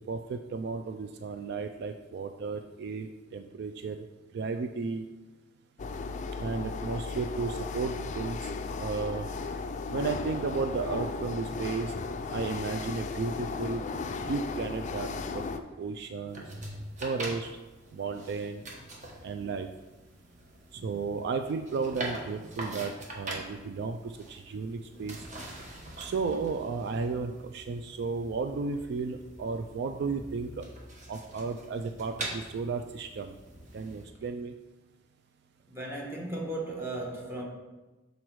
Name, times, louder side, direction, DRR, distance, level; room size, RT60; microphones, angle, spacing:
voice 1, 0.1-4.0 4.3-5.1 6.4-8.5 8.8-9.3 9.9-11.9 12.3-13.8 14.2-15.1 15.3-15.4 15.8-16.4 17.0-17.5 17.9-18.6 19.2-19.7 20.8-25.2 26.0-30.6 31.1-33.3 33.7-34.5, right 4 dB, 55° right, 0.3 m, -33 dB
sound 1, 5.8-15.6, left 4 dB, 40° left, 0.3 m, -35 dB
sound 2, 16.3-34.1, right 1 dB, 40° right, 1.1 m, -44 dB
voice 2, 35.7-37.4, right 2 dB, 15° right, 1.1 m, -36 dB
6.2 x 4.0 x 4.6 m
head